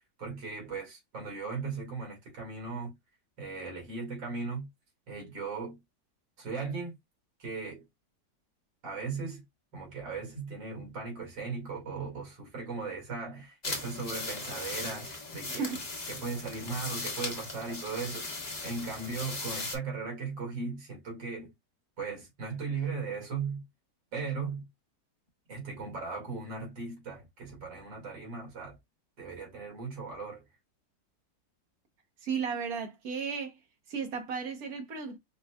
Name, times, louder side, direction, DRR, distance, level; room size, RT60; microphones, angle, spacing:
voice 1, 0.2-2.9 3.4-4.7 5.1-5.8 6.4-7.0 7.4-7.9 8.8-9.4 9.7-15.8 16.1-21.5 22.0-23.6 24.1-24.7 25.5-28.8 29.2-30.5, right 4 dB, 80° right, 2.7 m, -37 dB
sound 1, 13.6-19.8, left 2 dB, 30° left, 0.9 m, -38 dB
voice 2, 32.2-33.6 33.9-35.2, right 6 dB, 60° right, 1.3 m, -34 dB
5.4 x 2.2 x 2.2 m
omnidirectional pair, 1.9 m